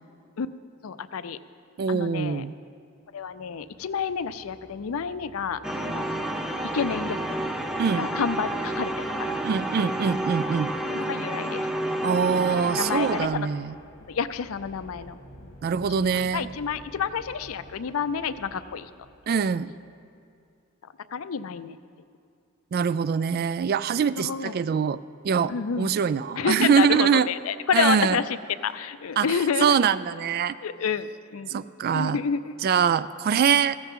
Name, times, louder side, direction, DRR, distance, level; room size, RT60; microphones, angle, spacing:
voice 1, 0.8-1.4 1.9-2.4 3.1-6.1 6.7-7.4 8.0-8.9 9.2-9.4 10.9-11.7 12.8-13.5 14.1-15.5 15.9-18.9 21.1-21.8 24.2-24.6 25.5-26.0 26.4-28.2 28.6-29.8 30.6-31.6 31.9-32.6, left 6 dB, 90° left, 14 dB, 0.5 m, -29 dB
voice 2, 1.8-2.5 7.8-8.1 9.4-10.7 12.0-13.7 15.6-16.5 19.3-19.7 22.7-25.0 25.2-27.3 27.7-28.2 29.2-29.3 29.6-30.6 31.5-32.2 32.6-33.8, right 7 dB, 45° right, 16 dB, 0.3 m, -23 dB
sound 1, 3.0-20.0, left 1 dB, 75° left, 2.1 m, -50 dB
sound 2, 5.6-13.3, right 1 dB, 5° right, 0.6 m, -30 dB
15.0 x 15.0 x 3.7 m, 2.4 s
head